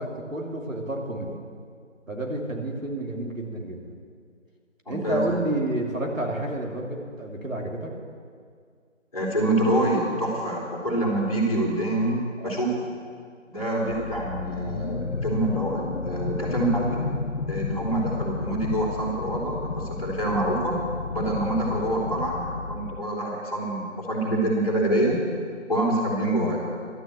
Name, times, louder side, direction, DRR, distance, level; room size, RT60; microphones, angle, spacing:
voice 1, 0.0-1.4 2.1-3.9 4.9-8.0 12.4-12.6 21.7-21.8 26.4-26.6, right 1 dB, 90° right, 0 dB, 2.8 m, -30 dB
voice 2, 4.9-5.2 9.1-12.7 13.5-17.0 17.5-20.8 21.1-25.1 25.7-26.6, right 1 dB, 30° left, -4 dB, 3.1 m, -26 dB
sound 1, 13.9-23.0, left 4 dB, 60° left, 0.6 m, -32 dB
12.0 x 9.8 x 8.2 m, 2.1 s
figure-of-eight pair, 175°, 38 cm